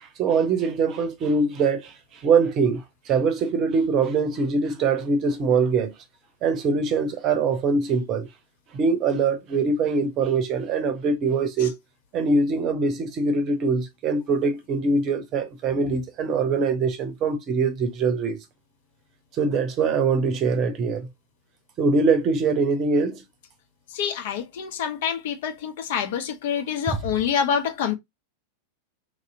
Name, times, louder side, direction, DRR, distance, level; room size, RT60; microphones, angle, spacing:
voice 1, 0.0-5.9 6.4-8.3 8.7-11.8 12.1-18.4 19.4-21.1 21.8-23.2 26.9-27.0, right 4 dB, 35° right, 0.7 m, -23 dB
voice 2, 23.9-27.9, left 8 dB, 55° left, 0.6 m, -26 dB
2.9 x 2.8 x 2.6 m
figure-of-eight pair, 90°, 0 cm